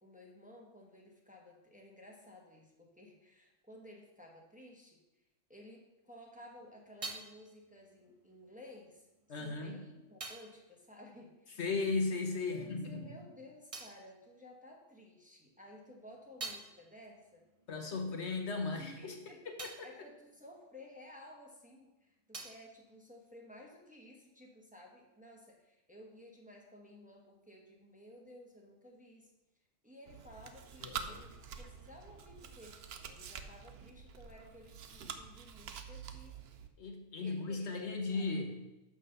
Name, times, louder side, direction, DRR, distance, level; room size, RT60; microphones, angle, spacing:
voice 1, 0.0-5.0 5.5-11.6 12.5-17.4 17.9-18.2 18.6-19.4 19.8-29.3 29.8-36.4 37.2-38.3, left 1 dB, 5° right, -1 dB, 1.2 m, -55 dB
sound 1, 6.3-12.2 12.4-15.1 15.6-21.6 21.8-23.9, right 3 dB, 30° right, 0.8 m, -51 dB
voice 2, 9.3-9.8 11.6-13.1 17.7-19.2 19.4-19.9 30.8-31.2 36.8-38.7, left 3 dB, 60° left, 4 dB, 1.2 m, -36 dB
Chewing mastication, 30.1-36.7, right 7 dB, 60° right, 0.8 m, -47 dB
6.4 x 5.9 x 6.6 m, 0.98 s
omnidirectional pair, 1.3 m